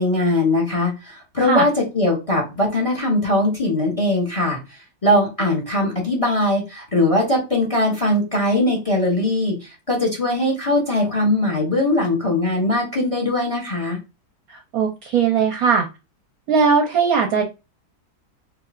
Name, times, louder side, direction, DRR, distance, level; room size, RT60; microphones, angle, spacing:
voice 1, 0.0-4.6 5.0-14.0, left 1 dB, 25° left, 0 dB, 1.1 m, -20 dB
voice 2, 14.5-15.9 16.5-17.4, right 6 dB, 65° right, 4 dB, 1.0 m, -19 dB
5.0 x 2.6 x 2.4 m, 0.26 s
omnidirectional pair, 1.9 m